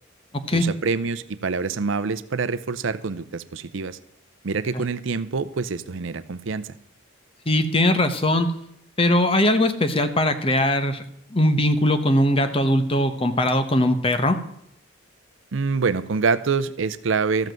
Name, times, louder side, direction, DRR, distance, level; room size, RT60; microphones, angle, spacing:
voice 1, 0.5-4.0 4.4-6.8 15.5-17.5, right 4 dB, 70° right, 15 dB, 0.6 m, -26 dB
voice 2, 7.5-8.5 9.0-11.0 11.3-14.4, left 1 dB, 25° left, 8 dB, 0.9 m, -20 dB
14.0 x 5.4 x 7.6 m, 0.71 s
head